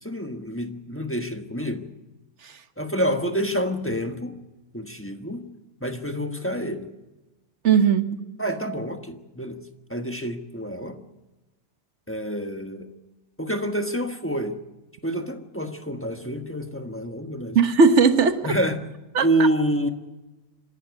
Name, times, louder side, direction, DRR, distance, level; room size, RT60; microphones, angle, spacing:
voice 1, 0.0-1.9 2.8-4.4 4.7-5.5 5.8-6.9 8.4-9.6 9.9-11.0 12.1-12.9 13.4-14.6 15.0-17.6 18.4-18.8 19.2-19.9, equal, 10° left, 1.1 m, -27 dB
voice 2, 7.6-8.2 17.5-18.5 19.1-19.5, right 5 dB, 45° right, 1.3 m, -18 dB
26.5 x 12.5 x 8.1 m
omnidirectional pair, 1.8 m